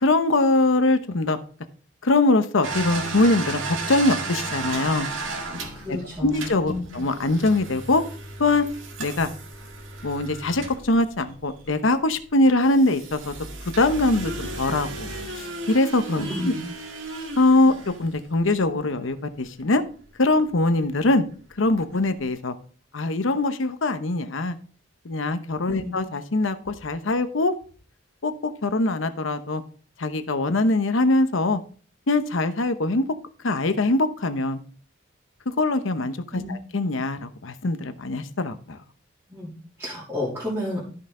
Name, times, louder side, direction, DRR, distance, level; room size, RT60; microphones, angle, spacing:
voice 1, 0.0-1.4 2.0-5.1 5.9-8.0 8.4-8.7 9.0-9.3 10.0-13.3 13.8-15.1 15.4-16.5 17.4-17.7 18.0-19.8 20.2-21.2 21.6-22.5 22.9-24.6 25.0-27.5 28.2-29.6 30.0-31.6 32.1-33.0 33.4-34.6 35.6-36.2 36.5-38.8, left 2 dB, 75° left, 10 dB, 0.9 m, -22 dB
sound 1, 2.6-12.0 12.6-18.6 20.0-20.1 20.5-20.6 21.7-21.8 21.9-22.1, right 3 dB, 80° right, 1.8 m, -34 dB
voice 2, 5.7-6.9 16.1-16.6 25.7-25.9 36.3-36.6 39.3-40.8, left 1 dB, 10° right, -7 dB, 2.8 m, -31 dB
13.0 x 5.6 x 3.8 m, 0.42 s
head